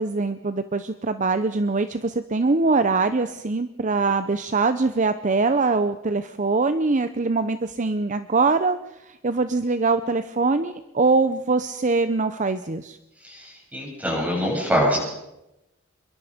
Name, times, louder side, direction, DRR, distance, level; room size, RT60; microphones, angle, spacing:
voice 1, 0.0-8.8 9.1-13.0, right 3 dB, 35° right, 11 dB, 0.7 m, -23 dB
voice 2, 13.2-15.0, equal, 10° right, -1 dB, 7.7 m, -24 dB
26.5 x 23.0 x 5.1 m, 0.92 s
head